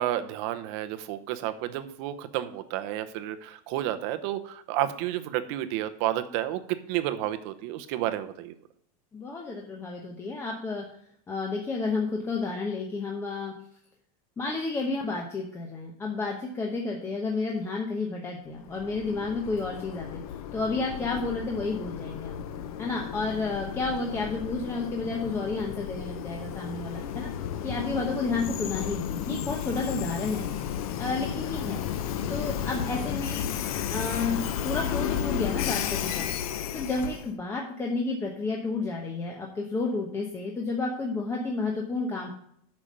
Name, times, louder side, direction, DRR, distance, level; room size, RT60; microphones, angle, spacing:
voice 1, 0.0-8.5, right 13 dB, 55° right, 10 dB, 0.9 m, -31 dB
voice 2, 9.1-10.8 11.3-13.5 14.4-20.2 20.5-22.4 22.8-27.3 27.6-30.4 31.0-31.8 32.3-33.5 33.9-36.3 36.7-42.3, left 3 dB, 15° left, 0 dB, 0.9 m, -31 dB
Train, 18.5-37.3, left 9 dB, 80° left, 0.9 m, -33 dB
8.8 x 6.0 x 5.2 m, 0.67 s
supercardioid pair, 165°, 18 cm